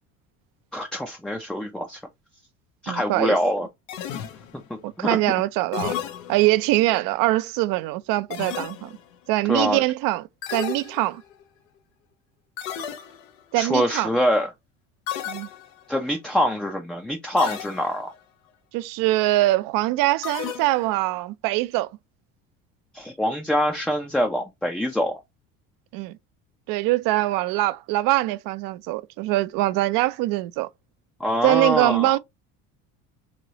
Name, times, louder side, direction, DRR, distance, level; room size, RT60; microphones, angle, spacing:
voice 1, 0.7-2.0 2.8-3.7 5.0-5.2 9.5-9.8 13.6-14.5 15.9-18.1 22.9-25.2 31.2-32.2, equal, ahead, 0.4 m, -24 dB
voice 2, 2.9-3.4 4.8-6.0 6.3-8.9 9.3-11.2 13.5-14.1 15.3-15.5 18.7-21.9 25.9-26.2 26.7-30.7 31.4-32.2, right 18 dB, 60° right, 0.5 m, -23 dB
sound 1, 3.9-4.8 5.7-6.7 8.3-9.2 10.4-11.4 12.6-13.4 15.1-16.0 17.4-18.2 20.2-21.1, left 10 dB, 85° left, 0.7 m, -33 dB
3.1 x 2.9 x 2.7 m
hypercardioid pair, 80°, 38 cm